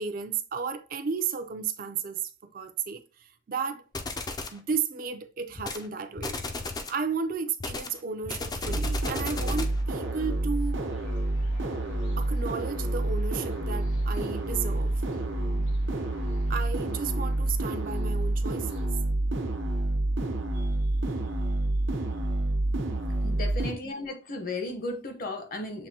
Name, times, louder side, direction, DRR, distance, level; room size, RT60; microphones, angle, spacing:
voice 1, 0.0-3.8 4.5-6.4 6.9-10.8 12.2-15.0 16.5-18.9 20.5-20.8 23.2-23.3, right 5 dB, 50° right, 0.4 m, -33 dB
sound 1, 3.9-4.6 5.6-5.9 6.2-7.0 7.6-9.8, left 3 dB, 20° left, 0.3 m, -35 dB
sound 2, 8.6-23.7, right 1 dB, 90° right, 0.8 m, -28 dB
sound 3, 9.2-18.9, left 1 dB, 85° left, 2.6 m, -50 dB
voice 2, 23.2-25.9, left 2 dB, 50° left, 0.9 m, -35 dB
7.2 x 2.6 x 2.8 m
head